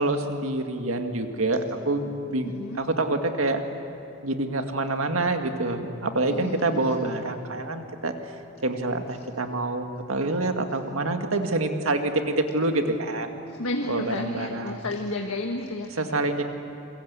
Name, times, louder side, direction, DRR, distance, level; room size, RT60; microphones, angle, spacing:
voice 1, 0.0-2.5 2.8-3.6 4.2-8.1 8.6-13.3 13.9-14.8 16.0-16.4, right 2 dB, 75° right, 5 dB, 2.0 m, -26 dB
voice 2, 2.4-2.8 6.3-7.0 9.1-9.3 10.7-10.8 13.5-16.4, left 2 dB, 85° left, 2 dB, 1.6 m, -33 dB
28.0 x 23.0 x 8.4 m, 2.6 s
head